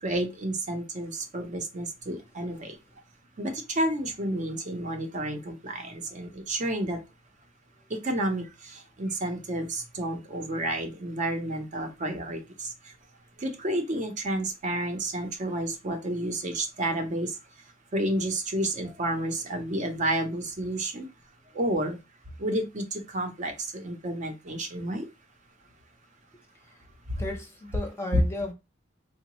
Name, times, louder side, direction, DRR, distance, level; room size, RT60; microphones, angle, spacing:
voice 1, 0.0-2.7 3.4-7.0 8.0-12.7 13.4-17.3 17.9-21.1 21.5-22.0 22.4-25.1 28.1-28.2, right 1 dB, 40° right, 0.6 m, -30 dB
voice 2, 26.5-26.9 27.2-28.5, left 1 dB, 15° left, 0.6 m, -35 dB
3.7 x 2.1 x 2.9 m
head